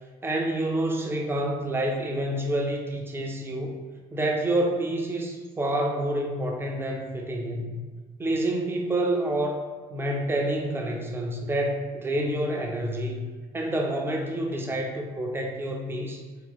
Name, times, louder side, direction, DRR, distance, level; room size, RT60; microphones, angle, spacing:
voice 1, 0.2-3.7 4.1-7.8 8.2-9.6 9.9-13.2 13.5-16.2, right 1 dB, 15° right, 1 dB, 0.5 m, -28 dB
3.0 x 2.1 x 3.6 m, 1.4 s
cardioid pair, 110°, 17 cm